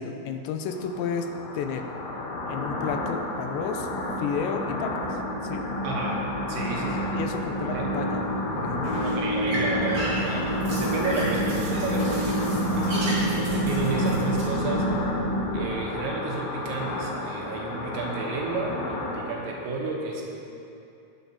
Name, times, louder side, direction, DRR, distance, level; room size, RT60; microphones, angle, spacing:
voice 1, 0.0-1.9 2.5-3.9 4.2-5.1 5.4-5.7 6.7-8.3 8.6-8.9, left 6 dB, 85° left, 6 dB, 2.9 m, -32 dB
sound 1, 0.6-19.2, left 2 dB, 70° left, 3.1 m, -33 dB
sound 2, 3.4-15.7, right 1 dB, 50° left, 2.5 m, -29 dB
voice 2, 5.8-6.2 6.5-7.2 7.7-7.8 9.0-14.8 15.5-20.2, right 3 dB, 85° right, -2 dB, 3.4 m, -32 dB
sound 3, 8.2-14.4, equal, 45° right, 3.6 m, -35 dB
20.0 x 7.1 x 2.9 m, 2.7 s
omnidirectional pair, 5.1 m